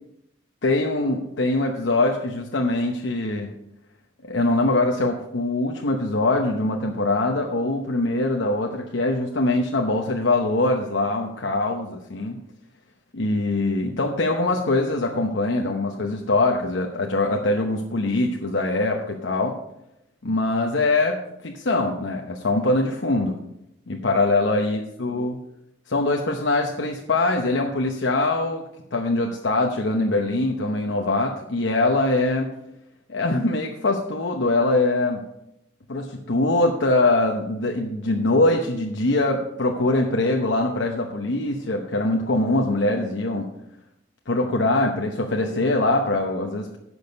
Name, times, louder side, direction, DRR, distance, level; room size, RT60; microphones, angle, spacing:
voice 1, 0.6-3.5 4.2-12.4 13.1-19.6 20.2-23.4 23.9-25.4 25.9-28.6 28.9-32.5 33.1-35.2 35.9-43.5 44.3-46.8, left 2 dB, 70° left, 1 dB, 0.9 m, -23 dB
10.5 x 6.4 x 5.2 m, 0.82 s
head